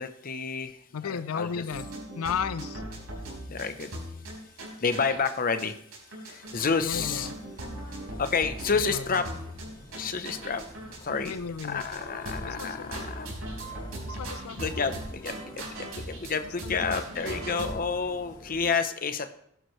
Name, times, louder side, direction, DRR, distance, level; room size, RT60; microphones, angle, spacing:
voice 1, 0.0-1.6 3.5-4.3 4.8-5.8 6.2-7.3 8.2-9.3 10.0-10.6 11.0-11.4 11.6-13.3 14.5-19.3, left 5 dB, 40° left, 9 dB, 0.8 m, -30 dB
voice 2, 0.9-1.9 2.1-2.8 6.8-7.3 8.9-9.2 11.2-11.8 12.4-12.9 14.0-14.6 16.6-17.0, left 6 dB, 85° left, 13 dB, 0.5 m, -34 dB
sound 1, 1.7-5.3 5.6-5.7 5.9-11.3 11.6-12.0 12.2-16.3 16.6-17.9, right 1 dB, 75° right, 4.8 m, -39 dB
sound 2, 6.4-18.7, equal, 20° left, 5.4 m, -49 dB
18.5 x 11.0 x 3.2 m, 0.70 s
head